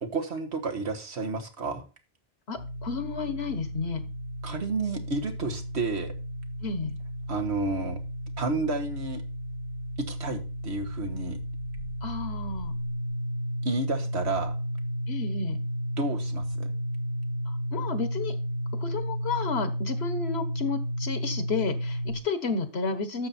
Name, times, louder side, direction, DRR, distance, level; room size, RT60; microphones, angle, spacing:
voice 1, 0.0-1.8 4.4-6.1 7.3-8.0 8.4-9.2 10.0-11.4 13.6-14.5 16.0-16.7, right 3 dB, 80° right, 5 dB, 1.8 m, -31 dB
voice 2, 2.5-4.1 6.6-7.0 12.0-12.8 15.1-15.6 17.5-18.4 18.7-23.3, left 4 dB, 70° left, 11 dB, 1.5 m, -32 dB
sound 1, 2.6-22.2, equal, 45° right, 2.1 m, -33 dB
11.5 x 7.2 x 4.3 m, 0.33 s
omnidirectional pair, 1.1 m